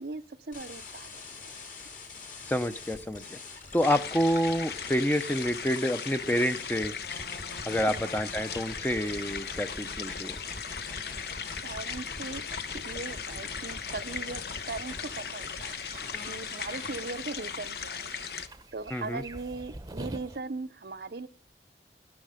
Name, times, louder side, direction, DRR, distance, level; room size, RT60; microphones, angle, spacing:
voice 1, 0.0-1.6 7.9-8.1 11.6-12.4 12.7-15.7 16.3-18.1 18.7-21.3, right 3 dB, 65° right, 11 dB, 0.7 m, -39 dB
sound 1, 0.5-17.1, left 2 dB, 45° left, 2.7 m, -44 dB
voice 2, 2.5-3.4 3.7-6.9 7.6-10.4 18.9-19.2, equal, 10° left, 10 dB, 0.6 m, -28 dB
sound 2, 3.8-18.5, left 6 dB, 65° left, 0.8 m, -38 dB
sound 3, 15.4-20.4, right 2 dB, 20° right, 0.8 m, -46 dB
12.5 x 12.0 x 5.0 m, 0.40 s
head